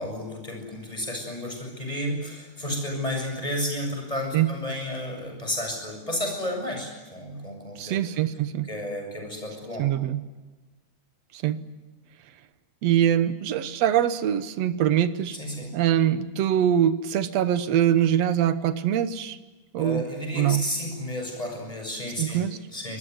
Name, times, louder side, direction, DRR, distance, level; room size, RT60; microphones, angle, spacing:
voice 1, 0.0-8.0 8.6-9.9 15.3-15.7 19.8-23.0, left 1 dB, 10° left, 2 dB, 7.3 m, -32 dB
voice 2, 7.8-8.7 9.8-10.2 11.3-11.6 12.8-15.4 15.7-19.4 19.7-20.0 20.3-20.6 22.2-22.6, right 10 dB, 65° right, 12 dB, 2.0 m, -23 dB
25.5 x 20.5 x 9.6 m, 1.2 s
omnidirectional pair, 3.6 m